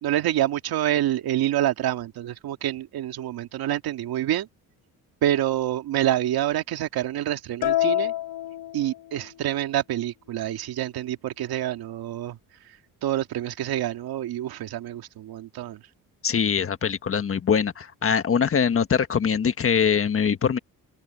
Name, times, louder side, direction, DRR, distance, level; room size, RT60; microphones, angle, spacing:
voice 1, 0.0-4.5 5.2-8.1 8.7-15.8, right 12 dB, 75° right, 2.2 m, -27 dB
sound 1, 7.6-9.4, left 14 dB, 80° left, 3.7 m, -27 dB
voice 2, 16.2-20.6, left 7 dB, 35° left, 1.5 m, -23 dB
cardioid pair, 130°, 37 cm